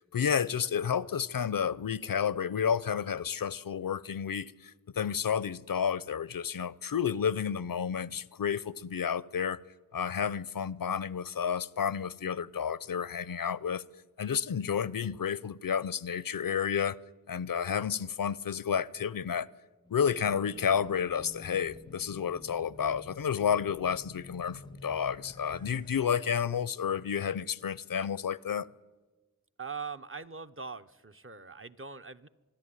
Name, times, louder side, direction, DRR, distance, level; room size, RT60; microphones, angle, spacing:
voice 1, 0.1-9.6 9.9-13.8 14.2-17.0 17.3-19.5 19.9-28.7, left 7 dB, 70° left, 0.6 m, -31 dB
Race car auto racing / Alarm, 19.9-26.1, left 2 dB, 15° left, 0.5 m, -50 dB
voice 2, 29.6-32.3, right 5 dB, 35° right, 0.8 m, -42 dB
25.5 x 11.0 x 9.9 m
wide cardioid pair, 55°, 35 cm